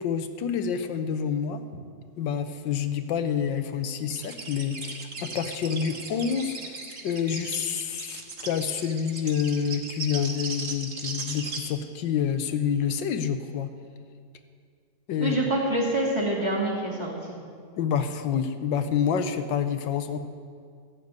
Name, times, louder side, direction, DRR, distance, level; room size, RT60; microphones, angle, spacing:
voice 1, 0.0-1.6 2.2-6.8 7.0-13.7 15.1-15.5 17.8-20.2, left 7 dB, 85° left, 9 dB, 1.5 m, -28 dB
sound 1, 4.1-11.6, right 4 dB, 45° right, 1.7 m, -37 dB
voice 2, 15.2-17.4, right 1 dB, 15° right, -5 dB, 2.8 m, -26 dB
15.5 x 6.9 x 9.3 m, 2.2 s
omnidirectional pair, 2.0 m